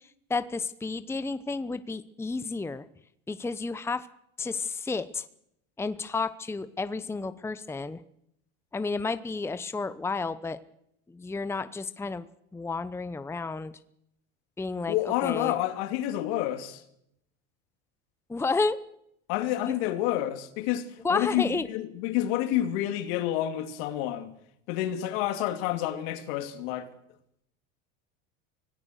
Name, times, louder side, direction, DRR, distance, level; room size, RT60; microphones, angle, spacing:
voice 1, 0.3-2.8 3.3-4.1 4.4-5.2 5.8-8.0 8.7-10.6 11.1-13.7 14.6-15.5 18.3-18.8 19.6-19.7 21.0-21.7, left 4 dB, 5° left, 0.9 m, -31 dB
voice 2, 14.9-16.8 19.3-24.3 24.7-26.9, left 13 dB, 70° left, 2.6 m, -29 dB
25.0 x 17.5 x 6.5 m
supercardioid pair, 110°, 36 cm